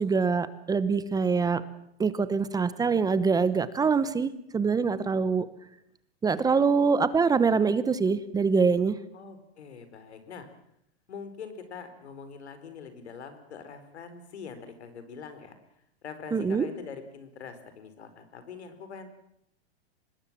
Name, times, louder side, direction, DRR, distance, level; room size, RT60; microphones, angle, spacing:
voice 1, 0.0-1.6 2.0-5.5 6.2-9.0 16.3-16.7, right 5 dB, 10° right, 15 dB, 0.9 m, -24 dB
voice 2, 9.1-10.5 11.1-15.6 16.0-19.1, left 6 dB, 90° left, 9 dB, 4.7 m, -43 dB
25.0 x 20.0 x 7.6 m, 0.74 s
hypercardioid pair, 135°, 32 cm